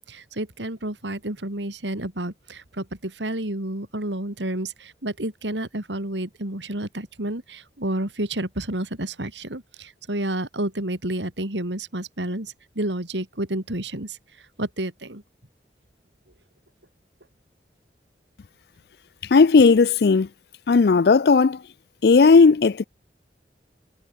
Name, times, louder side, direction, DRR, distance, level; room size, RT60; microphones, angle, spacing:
voice 1, 0.0-14.2 14.6-15.2, right 1 dB, 90° right, 3.7 m, -30 dB
voice 2, 19.3-20.3 20.7-21.6 22.0-22.9, left 4 dB, 65° left, 0.4 m, -15 dB
head